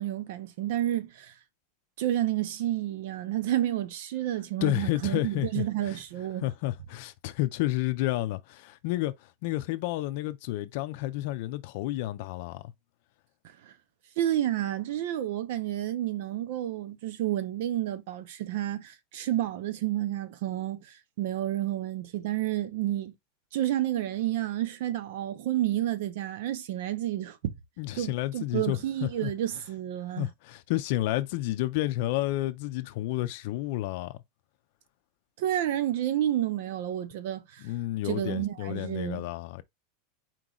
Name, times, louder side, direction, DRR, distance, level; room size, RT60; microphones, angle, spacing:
voice 1, 0.0-1.3 2.0-6.5 13.4-13.7 14.2-23.1 23.5-27.5 27.9-30.3 35.4-37.7 38.0-39.3, right 13 dB, 65° right, 0.8 m, -30 dB
voice 2, 4.6-6.0 6.4-12.6 27.8-29.3 30.2-34.2 37.6-39.6, left 16 dB, 55° left, 0.5 m, -31 dB
4.5 x 3.0 x 3.9 m
supercardioid pair, 165°, 0 cm